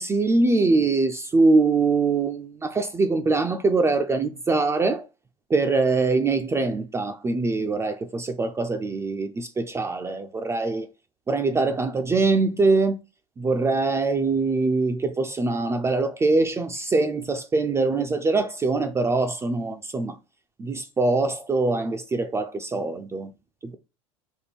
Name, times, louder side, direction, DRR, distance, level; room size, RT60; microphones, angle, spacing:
voice 1, 0.0-5.1 5.5-10.9 11.3-13.0 13.4-20.2 20.6-23.3 23.6-23.8, right 3 dB, 15° right, 0.3 m, -23 dB
4.2 x 2.1 x 3.4 m
hypercardioid pair, 95°, 19 cm